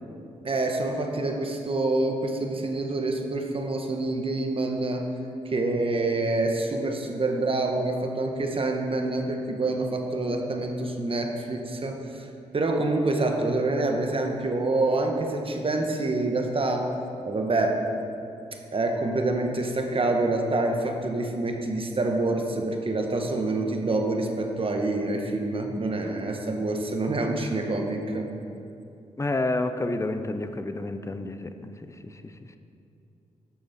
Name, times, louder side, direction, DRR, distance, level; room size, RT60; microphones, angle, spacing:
voice 1, 0.4-5.1 5.4-12.3 12.5-16.9 17.2-17.8 18.7-28.3, right 2 dB, 40° right, 3 dB, 1.3 m, -26 dB
voice 2, 29.2-31.7 32.0-32.3, left 2 dB, 20° left, 9 dB, 0.7 m, -29 dB
11.0 x 6.7 x 4.3 m, 2.6 s
supercardioid pair, 55°, 14 cm